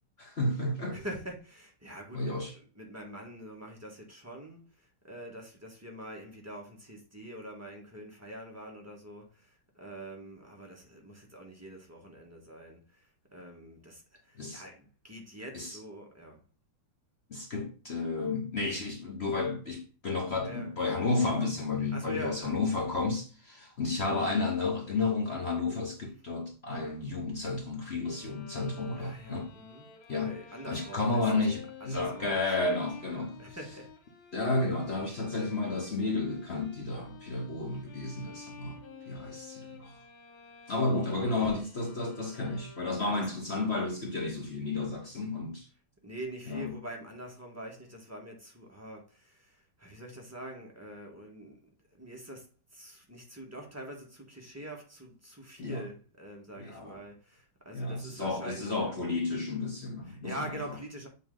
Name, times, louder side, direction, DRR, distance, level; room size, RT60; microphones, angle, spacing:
voice 1, 0.2-1.0 2.1-2.5 14.4-14.6 15.5-15.8 17.3-29.5 30.1-30.4 30.6-33.4 34.3-38.8 39.1-40.0 40.7-45.7 46.5-46.7 55.6-55.9 56.6-57.0 57.7-60.5, left 3 dB, 40° left, 1.1 m, -32 dB
voice 2, 0.9-4.6 5.0-13.0 13.3-16.4 20.4-20.7 21.9-22.6 29.0-31.4 31.8-32.9 33.1-33.9 41.4-41.5 43.0-43.2 46.0-51.6 52.0-52.5 52.7-59.0 60.1-61.1, right 1 dB, 10° right, 1.2 m, -45 dB
Bowed string instrument, 28.0-43.3, left 5 dB, 75° left, 1.9 m, -51 dB
7.7 x 3.2 x 3.8 m
omnidirectional pair, 2.2 m